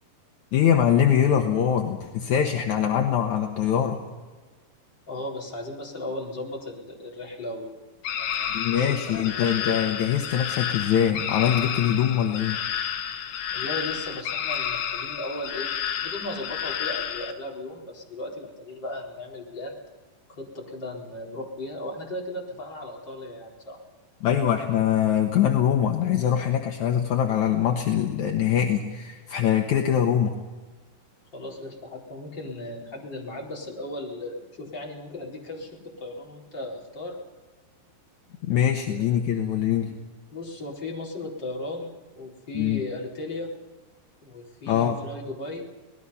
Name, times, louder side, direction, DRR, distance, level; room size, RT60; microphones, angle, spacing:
voice 1, 0.5-4.0 8.5-12.6 24.2-30.4 38.5-40.0 42.5-42.8 44.7-45.0, left 9 dB, 60° left, 2 dB, 2.1 m, -23 dB
voice 2, 5.1-7.7 8.2-9.7 13.5-19.8 20.3-23.8 31.3-35.7 36.0-37.2 38.9-39.1 40.3-43.5 44.2-45.6, left 1 dB, 25° left, -3 dB, 4.5 m, -36 dB
sound 1, 8.0-17.3, left 9 dB, 80° left, 3.4 m, -30 dB
26.5 x 19.0 x 5.6 m, 1.3 s
omnidirectional pair, 4.7 m